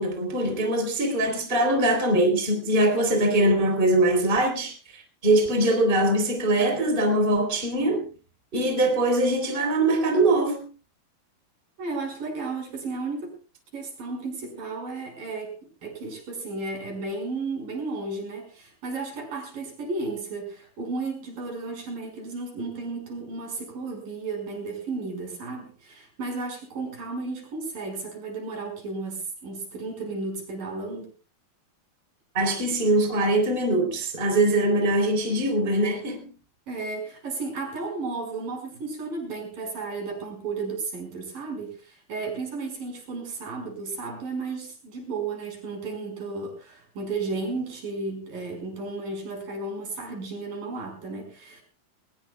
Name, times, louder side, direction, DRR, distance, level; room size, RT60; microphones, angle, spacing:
voice 1, 0.0-8.1 8.5-10.7 32.3-36.3, right 1 dB, 15° right, 3.5 m, -22 dB
voice 2, 11.8-13.4 13.7-15.6 15.8-31.1 36.7-51.6, right 3 dB, 65° right, 7.0 m, -33 dB
21.0 x 20.5 x 2.3 m
omnidirectional pair, 4.3 m